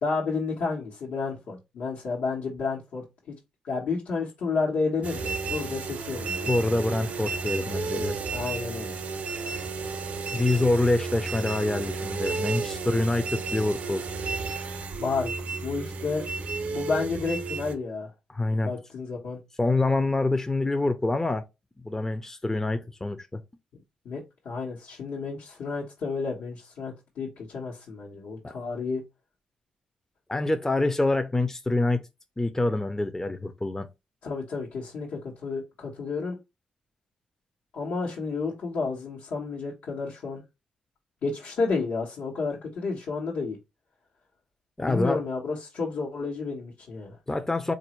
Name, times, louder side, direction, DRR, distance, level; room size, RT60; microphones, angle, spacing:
voice 1, 0.0-3.0 3.6-6.5 8.3-8.9 15.0-15.3 15.6-16.2 16.7-18.1 18.6-19.4 24.0-29.0 34.2-36.4 37.7-40.4 41.2-43.6 44.9-47.2, left 4 dB, 75° left, 1.2 m, -31 dB
sound 1, 5.0-17.7, right 4 dB, 65° right, 0.6 m, -32 dB
voice 2, 6.5-8.2 10.3-14.0 18.3-18.7 19.6-21.4 21.8-23.4 28.4-28.5 30.3-32.1 32.4-33.9 44.8-45.2 47.3-47.7, left 2 dB, 20° left, 0.6 m, -26 dB
4.1 x 2.6 x 3.0 m
supercardioid pair, 55°, 3 cm